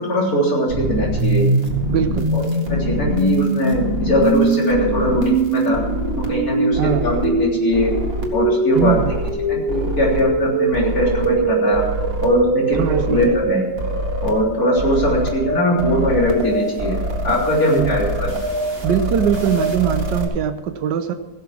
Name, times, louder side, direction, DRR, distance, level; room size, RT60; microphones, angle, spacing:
voice 1, 0.0-1.4 2.3-2.4 2.7-5.8 6.3-7.9 8.3-9.0 9.5-11.8 12.2-13.6 14.2-17.0 17.2-18.3, equal, 55° left, -3 dB, 4.1 m, -20 dB
sound 1, 0.7-20.2, right 2 dB, 35° right, 2.0 m, -22 dB
voice 2, 1.9-2.3 6.8-7.1 8.7-9.1 12.7-13.4 17.7-18.0 18.8-21.1, right 9 dB, 85° right, 8 dB, 1.4 m, -21 dB
16.5 x 7.3 x 7.5 m, 1.2 s
omnidirectional pair, 1.8 m